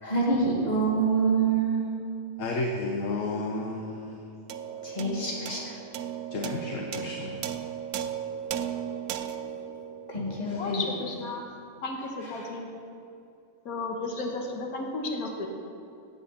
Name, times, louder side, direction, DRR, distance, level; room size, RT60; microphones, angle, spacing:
voice 1, 0.0-1.9 4.6-5.8 9.2-9.3 10.1-10.8 12.4-12.5, right 4 dB, 30° left, -3 dB, 2.2 m, -27 dB
voice 2, 2.4-4.2 6.3-7.5, left 2 dB, 65° left, 1 dB, 1.2 m, -32 dB
sound 1, 4.5-11.1, right 9 dB, 80° right, 1.1 m, -36 dB
voice 3, 10.5-11.5 11.8-12.7 13.6-15.5, left 2 dB, 85° left, 2 dB, 1.6 m, -33 dB
8.6 x 7.9 x 7.9 m, 2.5 s
omnidirectional pair, 1.5 m